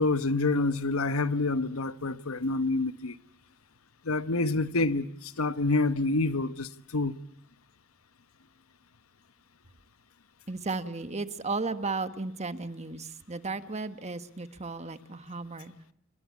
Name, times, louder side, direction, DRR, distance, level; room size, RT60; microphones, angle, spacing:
voice 1, 0.0-3.2 4.0-7.2, left 3 dB, 80° left, 1.1 m, -27 dB
voice 2, 10.5-15.7, right 3 dB, 30° right, 1.4 m, -34 dB
29.0 x 23.0 x 8.4 m
head